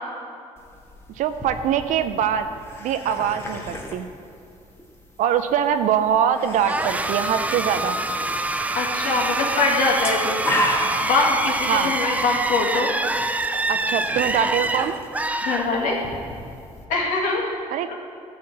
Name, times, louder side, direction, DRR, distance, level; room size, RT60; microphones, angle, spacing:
sound 1, 0.6-16.9, equal, 20° left, 1.5 m, -35 dB
voice 1, 1.2-2.5 2.8-4.1 5.2-8.0 11.7-11.9 13.7-14.9 17.7-17.9, right 8 dB, 75° right, 9 dB, 0.5 m, -23 dB
sound 2, 6.7-16.2, right 2 dB, 10° right, 0.4 m, -26 dB
voice 2, 8.7-10.4 11.0-12.9 15.4-16.0 16.9-17.5 17.9-18.0, left 3 dB, 80° left, -2 dB, 2.1 m, -23 dB
12.5 x 4.3 x 7.5 m, 2.5 s
cardioid pair, 100°, 13 cm